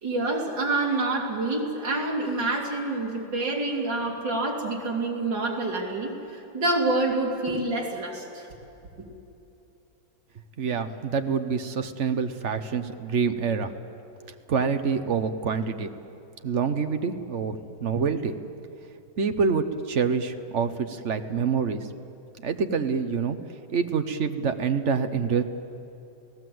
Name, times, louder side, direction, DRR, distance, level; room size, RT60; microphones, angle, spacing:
voice 1, 0.0-8.5, right 2 dB, 70° right, -2 dB, 3.8 m, -27 dB
voice 2, 10.6-13.7 14.5-15.9 16.4-18.4 19.2-21.9 22.4-23.4 23.7-25.4, right 5 dB, 45° right, 8 dB, 1.1 m, -26 dB
28.5 x 17.5 x 7.9 m, 2.8 s
omnidirectional pair, 2.0 m